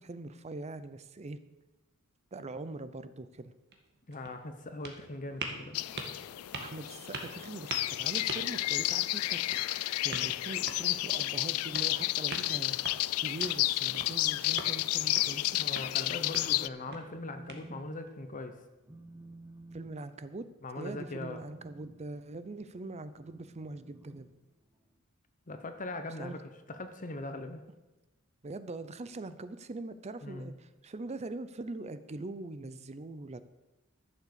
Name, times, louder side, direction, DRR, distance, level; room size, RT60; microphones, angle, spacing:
voice 1, 0.0-1.4 2.3-3.5 6.6-9.4 9.7-15.6 19.7-20.5 20.8-24.3 26.2-26.4 28.4-33.4, right 2 dB, 30° right, 13 dB, 0.5 m, -42 dB
sound 1, 3.6-18.1, right 3 dB, 50° right, 1.6 m, -45 dB
voice 2, 4.1-5.8 15.6-18.6 20.6-21.4 25.5-26.4 26.7-27.6 30.2-30.5, left 2 dB, 35° left, 7 dB, 0.9 m, -40 dB
sound 2, 5.7-16.7, left 17 dB, 80° left, 0.3 m, -31 dB
Telephone, 16.8-17.9 18.2-18.5 18.8-25.0, right 2 dB, 15° right, 1.2 m, -53 dB
12.0 x 7.3 x 6.8 m, 1.1 s
head